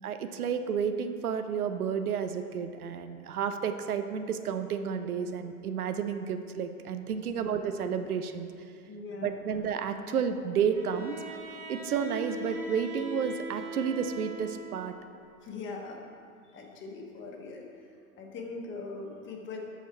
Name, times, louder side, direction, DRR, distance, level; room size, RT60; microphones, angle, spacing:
voice 1, 0.0-8.5 9.2-11.2 11.7-14.9, right 7 dB, 80° right, 8 dB, 0.7 m, -31 dB
voice 2, 8.9-9.5 15.4-16.0 16.5-17.9 18.2-19.6, left 3 dB, 25° left, 1 dB, 1.2 m, -41 dB
Bowed string instrument, 10.7-15.0, right 2 dB, 25° right, 1.5 m, -41 dB
8.1 x 6.2 x 4.5 m, 2.4 s
figure-of-eight pair, 95°, 44 cm